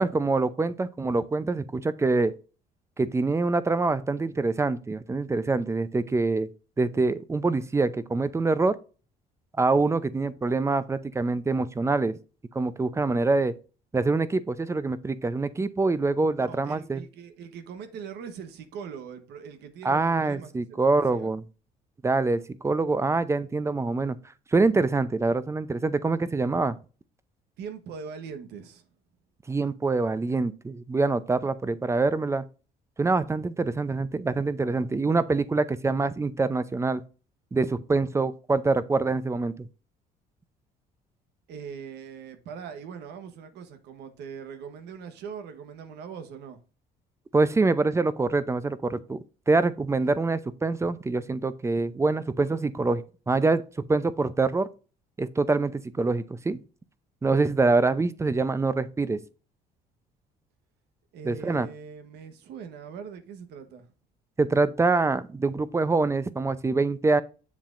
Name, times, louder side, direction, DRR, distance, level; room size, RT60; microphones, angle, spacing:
voice 1, 0.0-2.3 3.0-6.5 6.8-8.8 9.6-12.2 12.5-13.5 13.9-17.0 19.8-21.4 22.0-24.2 24.5-26.8 29.5-32.4 33.0-37.0 37.5-39.7 47.3-49.2 49.5-54.7 55.2-56.6 57.2-59.2 61.2-61.7 64.4-67.2, right 3 dB, 15° right, 0.6 m, -25 dB
voice 2, 16.5-21.3 27.6-28.8 41.5-46.6 61.1-63.9, right 6 dB, 80° right, 1.2 m, -41 dB
7.4 x 7.3 x 2.5 m
cardioid pair, 110°, 17 cm